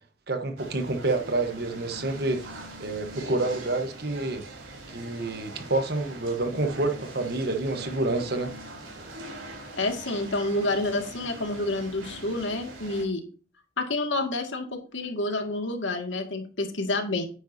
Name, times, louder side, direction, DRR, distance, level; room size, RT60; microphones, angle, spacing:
voice 1, 0.3-2.5 2.8-4.5 4.9-8.5, right 2 dB, 55° right, 1.3 m, -28 dB
sound 1, 0.6-13.0, right 1 dB, 90° right, 4.0 m, -42 dB
voice 2, 9.8-13.2 13.8-17.2, left 2 dB, 70° left, 2.2 m, -29 dB
9.9 x 9.3 x 2.8 m
head